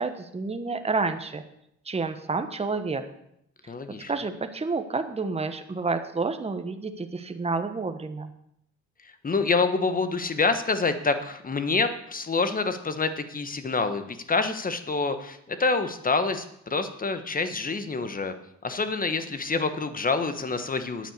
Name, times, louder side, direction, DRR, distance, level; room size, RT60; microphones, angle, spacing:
voice 1, 0.0-1.4 1.9-3.0 4.1-8.3, right 4 dB, 20° right, 8 dB, 1.2 m, -29 dB
voice 2, 3.7-4.1 9.2-18.3 18.6-21.1, left 4 dB, 30° left, 9 dB, 1.4 m, -27 dB
9.5 x 9.0 x 6.8 m, 0.76 s
cardioid pair, 90°, 30 cm